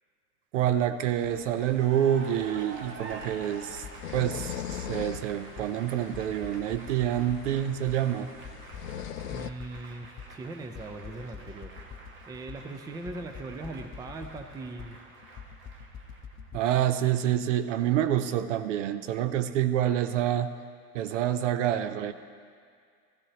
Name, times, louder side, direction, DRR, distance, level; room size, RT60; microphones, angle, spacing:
voice 1, 0.5-3.8 4.1-8.3 16.5-20.5 20.9-22.1, right 11 dB, 50° right, 11 dB, 0.7 m, -27 dB
sound 1, 1.0-9.5, left 11 dB, 75° left, 0.5 m, -42 dB
Cheering / Applause, 1.6-16.6, right 3 dB, 25° right, 1.3 m, -48 dB
sound 2, 3.3-16.6, left 5 dB, 25° left, 0.7 m, -46 dB
voice 2, 9.3-12.0 12.3-15.0, right 2 dB, 10° right, 6 dB, 0.5 m, -40 dB
16.5 x 15.0 x 2.9 m, 2.1 s
figure-of-eight pair, 85°, 47 cm